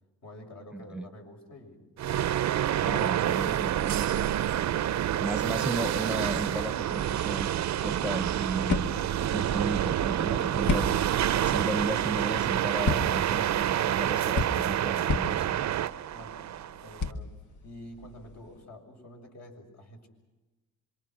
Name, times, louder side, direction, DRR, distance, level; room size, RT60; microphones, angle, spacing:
voice 1, 0.2-1.9 16.1-16.4 16.8-17.3 17.6-20.1, left 1 dB, 65° left, 2 dB, 6.9 m, -48 dB
voice 2, 0.7-1.1 2.8-4.2 5.2-7.5 7.8-8.8 9.2-10.9 11.4-15.6, right 1 dB, 5° right, 12 dB, 1.0 m, -35 dB
sound 1, 2.0-17.1, right 11 dB, 65° right, 0.7 m, -28 dB
sound 2, 8.6-18.6, left 3 dB, 80° left, 1.9 m, -35 dB
26.5 x 24.5 x 6.2 m, 1.2 s
cardioid pair, 75°, 30 cm